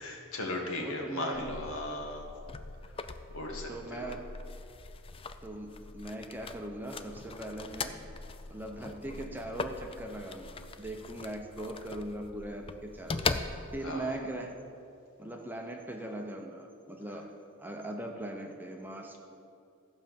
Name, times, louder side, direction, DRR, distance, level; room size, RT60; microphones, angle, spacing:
voice 1, 0.0-2.2 3.3-4.1 13.8-14.1, left 2 dB, 75° left, 0 dB, 1.8 m, -37 dB
voice 2, 0.8-1.5 3.7-4.3 5.4-8.0 8.5-13.3 13.7-14.6 15.2-17.3 17.6-19.2, right 1 dB, 10° right, 2 dB, 0.8 m, -40 dB
sound 1, 1.3-14.0, left 4 dB, 25° left, 0.4 m, -40 dB
14.0 x 5.3 x 7.5 m, 2.5 s
head